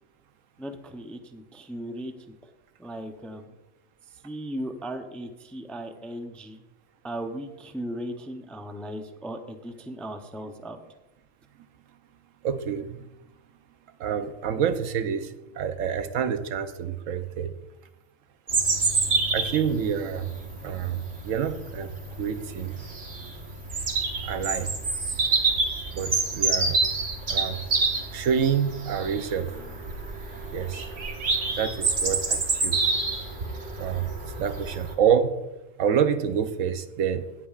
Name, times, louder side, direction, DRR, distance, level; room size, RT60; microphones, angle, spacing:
voice 1, 0.6-2.5 2.8-3.5 4.1-6.6 7.0-10.8, right 1 dB, ahead, 5 dB, 0.4 m, -37 dB
voice 2, 12.4-13.1 14.0-17.5 19.3-20.3 20.6-21.9 22.2-22.8 24.2-24.7 25.9-26.8 27.3-27.6 28.1-29.9 30.5-30.9 31.5-32.8 33.8-34.1 34.4-35.3 35.8-37.2, right 8 dB, 80° right, 10 dB, 1.1 m, -27 dB
Bird vocalization bird call bird song, 18.5-34.9, right 3 dB, 65° right, 1.7 m, -28 dB
17.5 x 8.6 x 2.4 m, 1.0 s
omnidirectional pair, 1.3 m